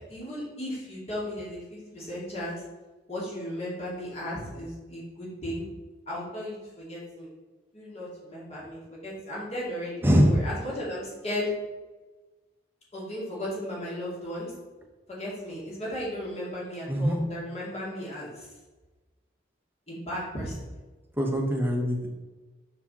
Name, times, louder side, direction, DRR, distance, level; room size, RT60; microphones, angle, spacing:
voice 1, 0.0-2.6 3.1-5.7 6.1-7.3 7.7-11.5 12.9-14.5 15.1-18.5 19.9-20.7, left 1 dB, 30° left, -6 dB, 2.1 m, -35 dB
voice 2, 10.0-10.3 16.9-17.2 21.2-22.1, equal, 10° right, 1 dB, 0.8 m, -23 dB
5.6 x 4.7 x 4.1 m, 1.2 s
head